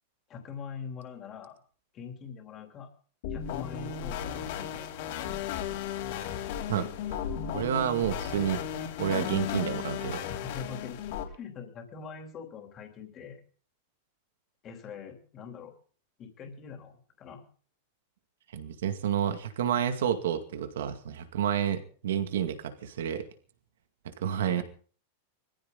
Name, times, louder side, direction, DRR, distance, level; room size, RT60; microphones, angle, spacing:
voice 1, 0.3-1.5 1.9-2.9 3.3-5.3 10.3-11.0 11.3-13.4 14.6-15.7 16.2-17.4 24.5-24.6, left 6 dB, 20° left, 4 dB, 3.2 m, -43 dB
sound 1, 3.2-11.2, left 9 dB, 50° left, 3.2 m, -35 dB
voice 2, 6.7-7.2 7.5-8.6 9.0-10.3 18.5-23.3 24.2-24.6, right 9 dB, 85° right, 7 dB, 2.2 m, -30 dB
22.5 x 15.0 x 4.0 m, 0.43 s
supercardioid pair, 175°, 0 cm